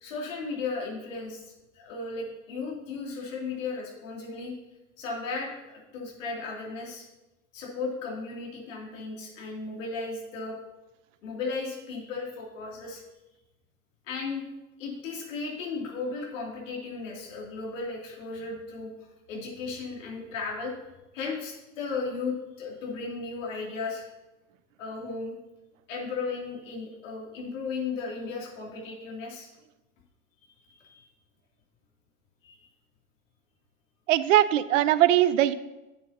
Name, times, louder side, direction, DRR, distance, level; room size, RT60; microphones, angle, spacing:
voice 1, 0.0-4.5 5.0-7.0 7.5-10.6 11.2-13.0 14.1-14.4 14.8-18.9 19.3-20.7 21.1-24.0 24.8-25.4 25.9-29.5 30.7-31.0 32.4-32.5, left 4 dB, 60° left, -2 dB, 2.9 m, -35 dB
voice 2, 34.1-35.5, right 13 dB, 60° right, 15 dB, 0.6 m, -21 dB
11.0 x 7.6 x 2.8 m, 1.0 s
figure-of-eight pair, 90°, 43 cm